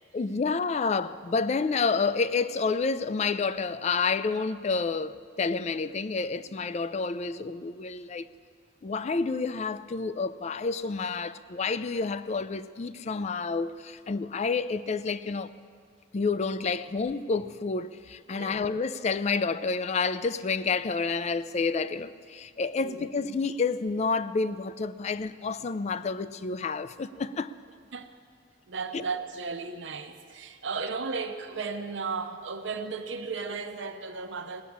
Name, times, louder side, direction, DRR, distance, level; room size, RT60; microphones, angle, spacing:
voice 1, 0.1-8.3 8.8-15.5 16.1-27.5 28.9-29.0, left 4 dB, 35° left, 0.4 m, -29 dB
voice 2, 18.3-18.7 22.8-23.1 27.9-28.1 28.7-34.6, right 4 dB, 80° right, 0.8 m, -35 dB
18.0 x 7.1 x 8.5 m
head